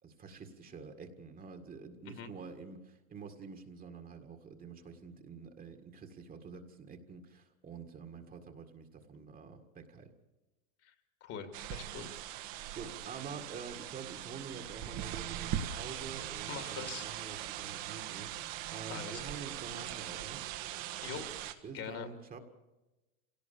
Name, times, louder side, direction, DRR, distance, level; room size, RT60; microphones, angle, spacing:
voice 1, 0.0-10.1 12.0-12.1 12.7-20.4 21.6-22.4, right 5 dB, 20° right, 5 dB, 1.9 m, -47 dB
voice 2, 11.2-12.1 16.5-17.1 18.9-19.4 21.0-21.3 21.7-22.1, left 7 dB, 35° left, 8 dB, 2.3 m, -43 dB
sound 1, 11.5-21.5, right 11 dB, 50° right, 1.6 m, -41 dB
26.0 x 17.5 x 7.0 m, 1.1 s
supercardioid pair, 135°, 39 cm